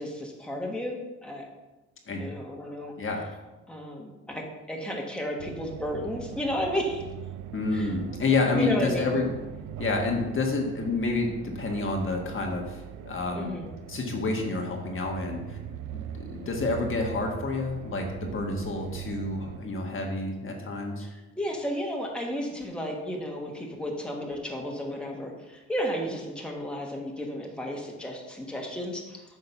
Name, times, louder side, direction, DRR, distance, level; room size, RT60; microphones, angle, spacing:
voice 1, 0.0-1.4 2.2-2.9 3.7-7.0 7.7-7.9 8.5-9.2 13.3-13.7 16.5-16.6 21.0-29.2, equal, 5° left, -1 dB, 1.5 m, -33 dB
voice 2, 3.0-3.3 7.5-9.3 9.8-13.6 13.9-15.6 15.9-21.1, left 3 dB, 45° left, 1 dB, 1.4 m, -29 dB
sound 1, 5.4-19.6, right 10 dB, 85° right, 0.5 m, -40 dB
8.2 x 3.8 x 5.7 m, 1.1 s
cardioid pair, 90°, 30 cm